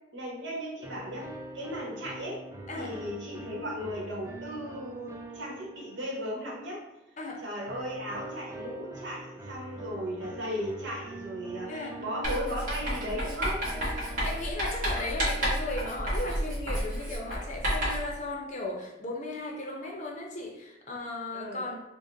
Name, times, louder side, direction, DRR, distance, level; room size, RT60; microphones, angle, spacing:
voice 1, 0.1-1.3 1.5-2.4 2.7-6.8 7.4-13.6 21.3-21.6, equal, 75° right, -3 dB, 1.1 m, -36 dB
sound 1, 0.8-6.6 7.7-15.1, right 1 dB, 15° right, 0.3 m, -44 dB
Writing, 12.2-18.1, equal, 45° right, 1.4 m, -31 dB
voice 2, 13.7-21.8, left 2 dB, 40° left, 0 dB, 0.6 m, -36 dB
4.9 x 2.1 x 2.6 m, 0.89 s
head